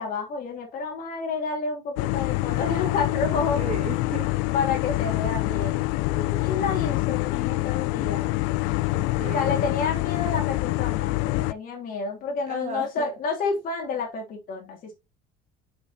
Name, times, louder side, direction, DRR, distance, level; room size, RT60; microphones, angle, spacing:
voice 1, 0.0-3.6 4.5-8.4 9.2-14.9, left 4 dB, 50° left, 2.8 m, -30 dB
sound 1, 2.0-11.5, left 20 dB, 85° left, 0.4 m, -26 dB
voice 2, 3.5-4.3 8.9-9.8 12.3-13.1, right 6 dB, 40° right, 2.0 m, -36 dB
6.2 x 5.8 x 2.8 m
cardioid pair, 145°, 19 cm